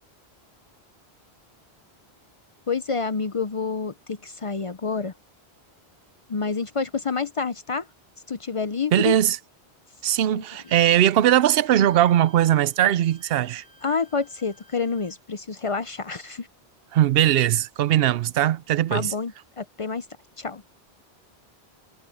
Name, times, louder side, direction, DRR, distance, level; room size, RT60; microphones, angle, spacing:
voice 1, 2.7-5.1 6.3-7.8 8.3-9.2 10.3-10.4 13.8-16.5 18.9-20.0 20.4-20.6, left 5 dB, 40° left, 0.5 m, -28 dB
voice 2, 8.9-9.4 10.0-13.6 16.9-19.1, right 12 dB, 70° right, 0.7 m, -20 dB
Wind instrument woodwind instrument, 10.5-15.2, left 1 dB, 15° right, 7.5 m, -55 dB
omnidirectional pair, 1.1 m